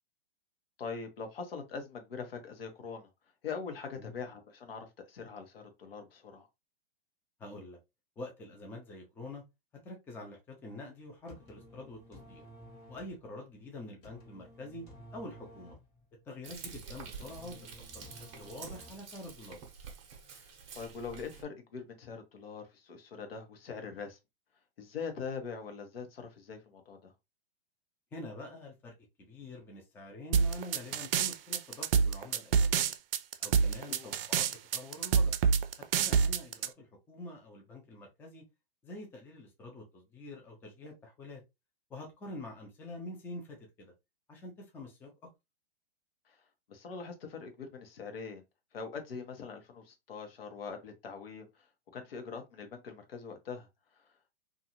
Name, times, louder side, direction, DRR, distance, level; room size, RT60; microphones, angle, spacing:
voice 1, 0.8-3.1 3.4-6.5 20.3-20.5 20.7-24.2 24.8-27.1 33.9-34.1 46.3-46.4 46.7-48.4 48.7-51.5 51.9-53.7, left 5 dB, 70° left, 1.0 m, -42 dB
voice 2, 7.4-7.8 8.2-9.4 9.8-12.5 12.9-14.9 15.1-15.8 16.2-18.1 18.4-19.6 28.1-28.9 29.2-32.9 33.4-35.4 35.9-38.4 38.8-41.4 41.9-43.9 44.3-45.3, left 1 dB, 5° left, 0.4 m, -46 dB
sound 1, 11.3-19.3, left 1 dB, 40° left, 1.2 m, -54 dB
Frying (food), 16.4-21.4, right 6 dB, 30° right, 0.7 m, -48 dB
sound 2, 30.3-36.7, right 6 dB, 70° right, 0.4 m, -27 dB
2.6 x 2.4 x 2.8 m
hypercardioid pair, 125°, 30 cm